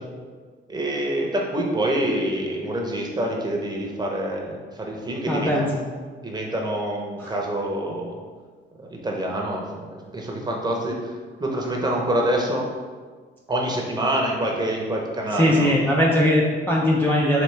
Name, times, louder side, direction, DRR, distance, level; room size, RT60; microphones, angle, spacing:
voice 1, 0.7-5.7 6.2-8.1 8.9-11.1 11.4-12.7 13.5-15.7, right 1 dB, 20° right, -1 dB, 0.8 m, -26 dB
voice 2, 5.3-5.7 7.2-7.3 15.3-17.4, left 1 dB, 10° left, -4 dB, 0.5 m, -20 dB
4.2 x 3.0 x 3.3 m, 1.5 s
cardioid pair, 90°, 20 cm